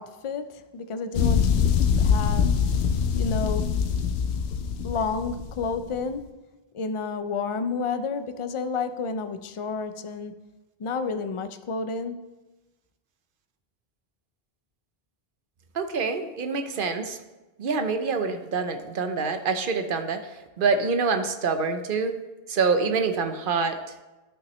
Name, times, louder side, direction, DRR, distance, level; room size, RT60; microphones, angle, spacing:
voice 1, 0.0-1.6 2.0-2.6 3.2-3.7 4.8-6.3 6.7-10.4 10.8-12.3, left 4 dB, 45° left, 10 dB, 0.4 m, -30 dB
sound 1, 1.1-6.0, left 7 dB, 75° left, 0.8 m, -24 dB
voice 2, 15.7-17.2 17.6-20.3 20.6-22.2 22.5-23.8, right 4 dB, 60° right, 8 dB, 0.8 m, -26 dB
12.0 x 5.8 x 3.1 m, 1.1 s
omnidirectional pair, 1.1 m